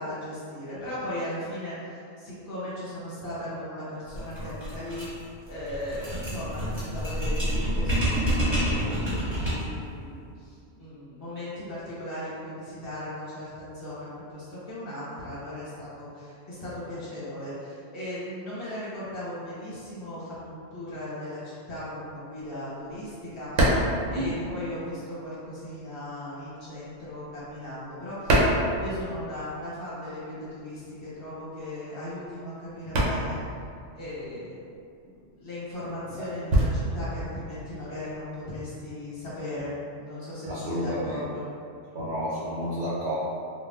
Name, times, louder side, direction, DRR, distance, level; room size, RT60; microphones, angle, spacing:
voice 1, 0.0-5.0 5.5-33.4 33.9-34.6 35.0-41.5, left 1 dB, 55° left, -10 dB, 1.2 m, -37 dB
sound 1, 4.1-9.8, equal, 25° right, 1.3 m, -28 dB
sound 2, 21.7-25.1 25.4-29.5 29.8-38.5, right 1 dB, 85° right, 0.9 m, -28 dB
voice 2, 24.1-24.5 36.2-36.3 40.5-41.2 41.9-43.1, equal, 60° right, -9 dB, 0.5 m, -31 dB
3.4 x 2.4 x 2.3 m, 2.4 s
omnidirectional pair, 1.2 m